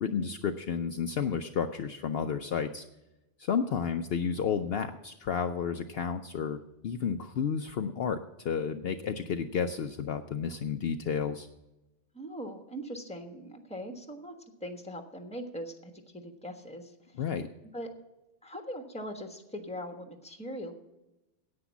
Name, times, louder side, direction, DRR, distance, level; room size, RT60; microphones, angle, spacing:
voice 1, 0.0-2.8 3.4-11.5 17.2-17.5, left 7 dB, 65° left, 7 dB, 0.8 m, -31 dB
voice 2, 12.1-14.3 14.6-17.2 17.7-17.9 18.4-20.7, equal, 5° left, 4 dB, 1.3 m, -41 dB
9.9 x 8.7 x 7.1 m, 0.96 s
omnidirectional pair, 1.2 m